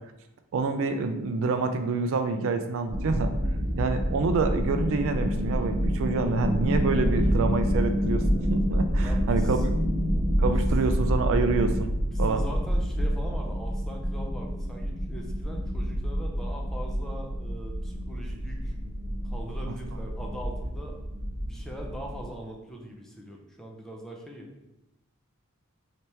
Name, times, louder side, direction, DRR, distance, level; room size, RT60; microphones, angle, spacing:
voice 1, 0.5-3.3 3.8-8.2 8.5-9.6 10.4-11.9 12.2-12.4, right 4 dB, 65° right, 7 dB, 0.4 m, -27 dB
sound 1, 2.9-22.3, equal, 25° right, 1.2 m, -28 dB
voice 2, 9.0-9.6 12.0-18.7 19.2-21.0 21.5-24.5, equal, ahead, 0 dB, 0.5 m, -41 dB
3.3 x 2.9 x 4.3 m, 0.94 s
head